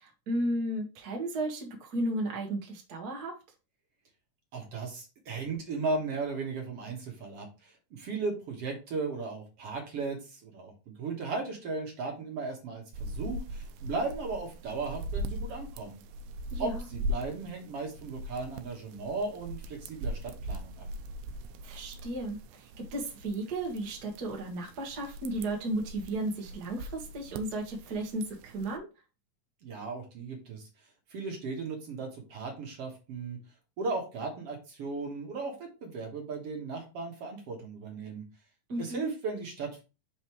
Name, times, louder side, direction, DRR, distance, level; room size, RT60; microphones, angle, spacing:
voice 1, 0.0-3.3 16.5-16.8 21.6-28.9 38.7-39.1, right 1 dB, 40° right, 0 dB, 1.6 m, -34 dB
voice 2, 4.5-16.0 16.6-20.9 29.6-30.6 31.1-33.4 33.8-38.2 38.8-39.8, right 3 dB, 60° right, 1 dB, 2.2 m, -36 dB
sound 1, 12.9-28.8, equal, 85° right, 2.1 m, -40 dB
5.9 x 5.3 x 3.1 m, 0.30 s
omnidirectional pair, 3.3 m